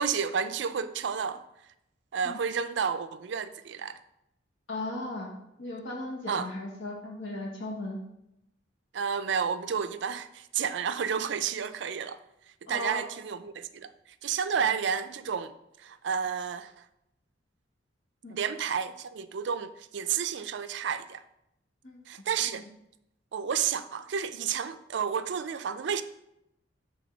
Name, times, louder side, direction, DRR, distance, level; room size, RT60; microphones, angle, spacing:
voice 1, 0.0-1.4 2.1-4.0 6.3-6.5 8.9-12.2 12.7-13.9 14.2-15.5 15.8-16.8 18.3-21.2 22.1-22.6 23.3-26.0, right 7 dB, 60° right, 0.4 m, -31 dB
voice 2, 4.7-5.3 5.6-8.0 12.7-13.1 18.2-18.4 21.8-22.0 22.5-22.7, left 2 dB, 75° left, 1.1 m, -37 dB
6.8 x 3.5 x 5.1 m
head